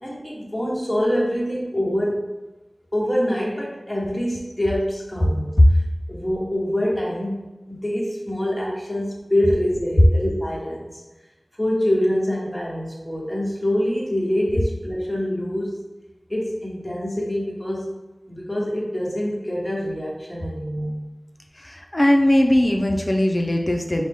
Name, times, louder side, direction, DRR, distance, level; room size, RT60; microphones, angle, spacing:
voice 1, 0.0-2.3 2.9-5.8 6.1-11.0 11.6-15.8 16.3-17.9 18.3-21.0, equal, 10° left, -4 dB, 1.3 m, -25 dB
voice 2, 21.6-24.1, left 1 dB, 35° left, 2 dB, 0.5 m, -18 dB
4.8 x 2.2 x 3.5 m, 1.1 s
wide cardioid pair, 45°, 0 cm